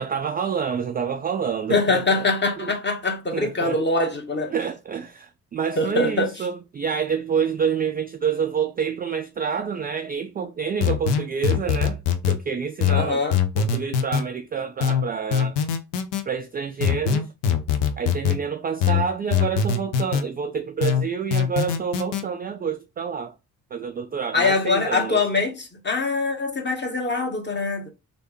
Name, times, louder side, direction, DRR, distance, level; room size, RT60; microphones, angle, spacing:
voice 1, 0.0-2.2 2.6-2.7 3.3-3.8 4.5-12.0 12.3-13.2 13.6-15.6 16.3-17.3 18.0-23.3 23.7-25.3, right 7 dB, 20° right, 0.3 m, -28 dB
voice 2, 1.7-4.5 5.8-6.3 12.9-13.4 24.3-27.9, left 3 dB, 25° left, 1.1 m, -23 dB
sound 1, 10.8-12.4 12.8-14.3 14.8-16.2 16.8-18.4 18.8-20.3 20.8-22.2, left 7 dB, 65° left, 0.7 m, -22 dB
3.2 x 2.6 x 3.0 m
hypercardioid pair, 45°, 46 cm